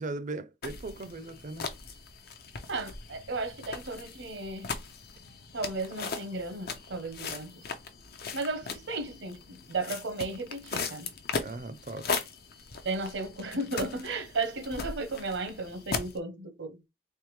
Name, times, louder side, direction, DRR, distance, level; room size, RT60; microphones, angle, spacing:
voice 1, 0.0-1.7 11.4-12.2, right 2 dB, 45° right, 0.5 m, -38 dB
sound 1, 0.6-16.2, left 4 dB, 55° left, 0.6 m, -39 dB
voice 2, 2.7-4.7 5.5-7.6 8.3-11.1 12.8-16.8, right 3 dB, 85° right, 0.9 m, -34 dB
3.5 x 3.3 x 3.2 m
head